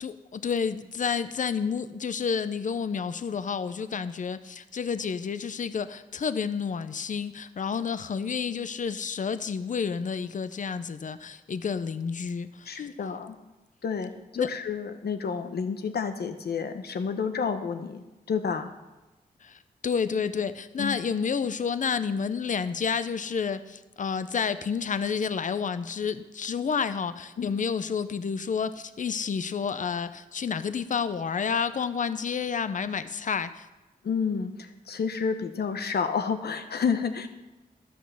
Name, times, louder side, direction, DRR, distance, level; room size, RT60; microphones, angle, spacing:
voice 1, 0.0-12.9 14.4-14.5 19.4-33.7, left 6 dB, 50° left, 13 dB, 0.6 m, -30 dB
voice 2, 12.7-13.4 13.8-14.1 14.4-18.7 20.8-21.0 27.4-27.5 34.0-37.3, left 6 dB, 80° left, 7 dB, 1.0 m, -30 dB
12.0 x 6.3 x 7.0 m, 1.1 s
wide cardioid pair, 95°, 17 cm